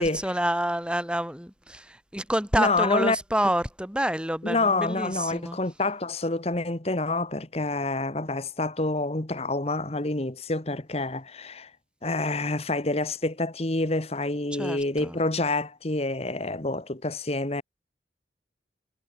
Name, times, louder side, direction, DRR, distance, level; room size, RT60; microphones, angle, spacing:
voice 1, 0.0-1.8 2.1-5.6 14.6-15.2, right 1 dB, 5° right, 4.1 m, -28 dB
voice 2, 2.6-3.5 4.4-11.7 12.0-17.6, left 2 dB, 35° left, 1.5 m, -27 dB
head